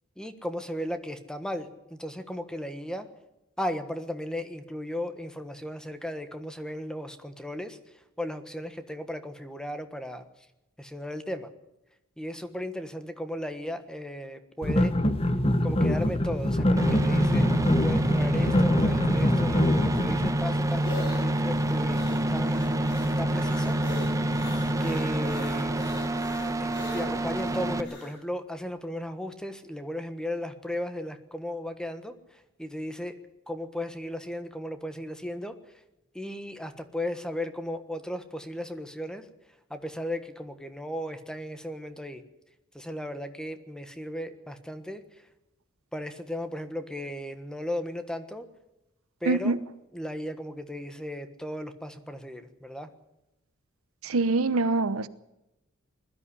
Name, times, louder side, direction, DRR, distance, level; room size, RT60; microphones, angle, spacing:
voice 1, 0.2-3.1 3.6-7.8 8.2-10.3 10.8-11.5 12.2-15.0 15.6-17.5 17.8-23.8 24.8-25.8 26.6-33.2 33.5-35.5 36.1-39.2 39.7-42.2 42.7-45.0 45.9-48.5 49.2-49.6 49.9-52.9, left 1 dB, 5° left, 1.4 m, -36 dB
sound 1, 14.6-20.3, left 1 dB, 30° left, 1.1 m, -24 dB
sound 2, 16.8-27.8, right 1 dB, 15° right, 1.1 m, -27 dB
sound 3, 20.4-28.2, left 2 dB, 55° left, 5.1 m, -42 dB
voice 2, 49.2-49.6 54.0-55.1, right 3 dB, 85° right, 0.9 m, -24 dB
20.5 x 13.0 x 9.9 m
head